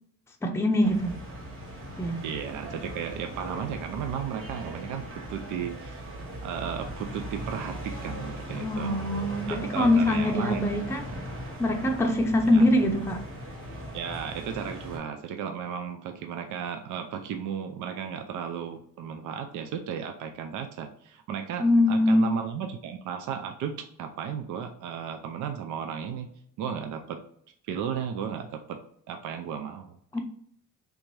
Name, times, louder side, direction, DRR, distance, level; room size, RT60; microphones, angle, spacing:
voice 1, 0.4-1.2 2.0-2.2 8.5-11.0 11.6-13.2 21.6-22.3 30.1-30.2, left 1 dB, 10° left, 2 dB, 0.5 m, -23 dB
sound 1, 0.8-15.0, right 1 dB, 45° right, 1.4 m, -39 dB
voice 2, 2.2-6.0 6.4-9.0 9.5-10.6 12.5-12.7 13.9-26.3 26.6-27.2 27.7-28.8 29.1-30.2, right 7 dB, 75° right, 5 dB, 0.5 m, -34 dB
3.4 x 2.6 x 3.1 m, 0.65 s
cardioid pair, 90°, 30 cm